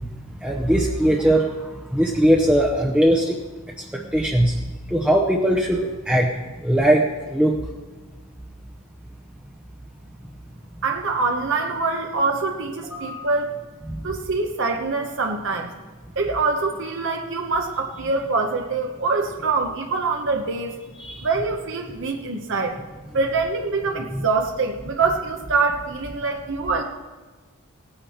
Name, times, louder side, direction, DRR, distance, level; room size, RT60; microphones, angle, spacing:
voice 1, 0.4-1.5 1.9-3.3 3.9-4.5 4.9-6.3 6.6-7.5 12.9-13.3 21.0-21.2 24.1-24.2, right 1 dB, 5° right, -2 dB, 0.8 m, -20 dB
voice 2, 10.8-13.6 14.0-15.7 16.2-20.7 21.2-22.8 23.1-26.8, right 4 dB, 55° right, 2 dB, 1.0 m, -24 dB
17.5 x 8.9 x 4.3 m, 1.3 s
head